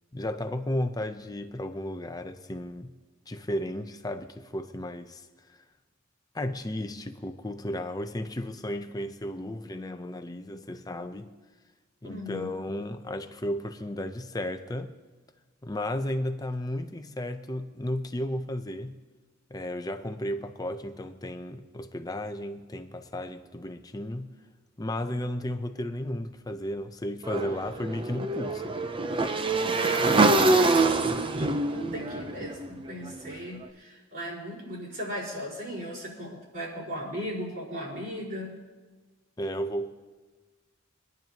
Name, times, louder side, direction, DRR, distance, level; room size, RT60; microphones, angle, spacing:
voice 1, 0.1-2.9 3.3-5.2 6.3-11.3 12.0-14.9 15.6-18.9 19.5-24.3 24.8-28.8 39.4-39.9, left 1 dB, 20° left, 0.7 m, -34 dB
voice 2, 12.0-12.6 29.8-38.5, equal, 50° right, 4.6 m, -37 dB
Motorcycle / Engine, 27.2-33.4, right 2 dB, 25° right, 0.6 m, -25 dB
24.0 x 10.5 x 2.9 m
head